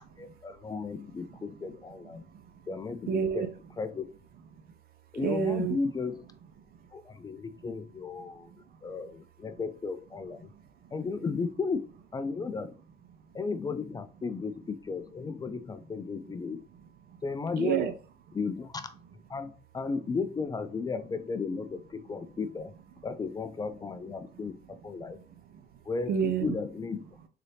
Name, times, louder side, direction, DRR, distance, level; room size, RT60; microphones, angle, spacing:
voice 1, 0.0-2.2 2.7-3.5 3.8-4.1 5.1-6.2 6.9-8.5 8.8-10.5 10.9-12.7 13.3-16.6 17.2-17.9 18.3-18.9 19.3-22.7 23.0-25.2 25.8-27.1, left 4 dB, 25° left, 0.4 m, -34 dB
voice 2, 2.1-2.6 3.1-3.5 4.5-4.8 5.1-5.8 6.7-6.9 8.2-8.9 10.4-10.9 17.1-17.2 17.6-17.9 25.1-25.8 26.1-26.5, right 7 dB, 65° right, 0.7 m, -32 dB
3.9 x 3.3 x 2.7 m
cardioid pair, 110°, 17 cm